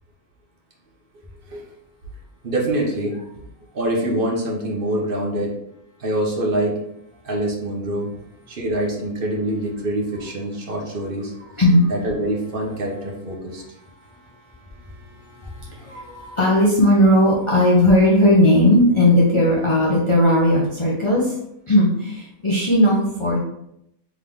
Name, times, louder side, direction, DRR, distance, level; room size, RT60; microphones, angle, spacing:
voice 1, 2.4-3.2 3.7-5.6 6.0-6.8 7.2-8.2 8.5-11.3 11.9-13.6, right 1 dB, 45° right, -1 dB, 1.0 m, -25 dB
voice 2, 11.6-11.9 14.0-21.4 21.7-23.4, left 1 dB, 30° left, -5 dB, 0.6 m, -17 dB
3.7 x 3.5 x 3.5 m, 0.79 s
omnidirectional pair, 1.5 m